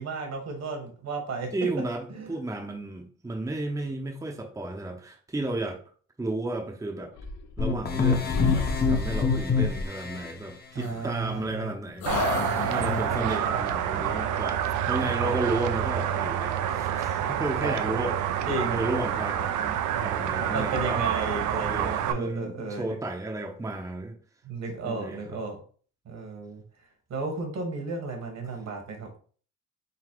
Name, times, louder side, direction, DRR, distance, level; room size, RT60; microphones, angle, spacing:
voice 1, 0.0-1.5 2.1-2.3 10.7-11.7 12.7-13.6 15.2-15.4 17.6-17.7 18.5-18.9 20.5-23.0 24.4-25.6 26.0-26.6 27.1-29.2, right 3 dB, 60° right, 3 dB, 1.4 m, -33 dB
voice 2, 1.5-5.8 6.2-7.1 7.6-12.3 12.7-21.1 21.7-24.2 24.8-25.4, right 2 dB, 10° right, 2 dB, 0.7 m, -33 dB
sound 1, 7.1-8.0 8.3-9.4 10.8-11.6 12.0-13.3, left 4 dB, 70° left, 0.7 m, -32 dB
sound 2, 7.6-10.3, left 5 dB, 30° left, 0.9 m, -25 dB
sound 3, 12.1-22.1, right 9 dB, 75° right, 0.5 m, -28 dB
4.0 x 2.1 x 4.5 m, 0.43 s
cardioid pair, 90°, 30 cm